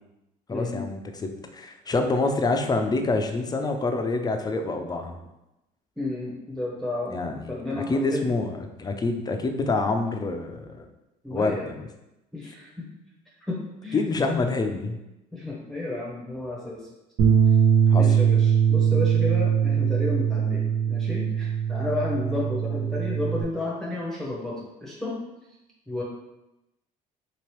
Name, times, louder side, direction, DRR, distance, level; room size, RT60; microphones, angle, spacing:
voice 1, 0.5-5.2 7.1-10.9 11.3-11.9 13.9-15.0 17.9-18.1, left 3 dB, 20° left, 5 dB, 0.4 m, -27 dB
voice 2, 6.0-8.3 11.2-11.7 12.3-12.9 13.4-14.3 15.3-16.8 18.0-24.5 24.8-25.1 25.9-26.0, left 2 dB, ahead, -5 dB, 0.8 m, -32 dB
Bass guitar, 17.2-23.4, right 8 dB, 60° right, 0.8 m, -21 dB
2.9 x 2.9 x 3.1 m, 0.94 s
supercardioid pair, 75°, 18 cm